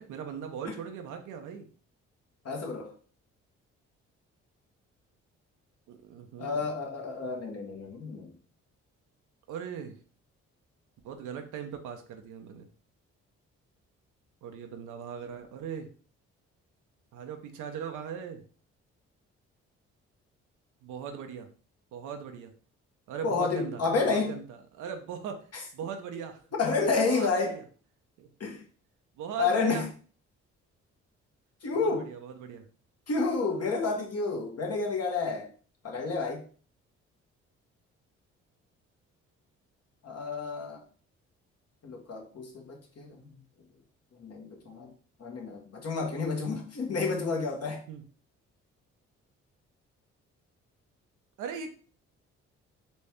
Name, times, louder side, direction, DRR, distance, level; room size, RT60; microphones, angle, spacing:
voice 1, 0.0-1.7 5.9-6.6 9.5-10.0 11.0-12.7 14.4-15.9 17.1-18.4 20.8-21.5 21.9-22.5 23.1-24.4 24.7-25.5 25.7-26.4 26.9-27.6 28.2-28.3 29.2-29.9 31.7-32.6 47.9-48.0 51.4-51.7, right 7 dB, 80° right, 0.9 m, -39 dB
voice 2, 2.4-2.9 6.4-8.3 23.2-24.3 25.5-25.6 26.6-27.6 28.4-28.6 29.4-29.9 31.6-32.1 33.1-35.5 35.8-36.4 40.0-40.8 41.8-43.4 44.1-44.9 45.2-47.8, left 4 dB, 55° left, 1.6 m, -30 dB
4.2 x 3.1 x 3.5 m
supercardioid pair, 55°, 30 cm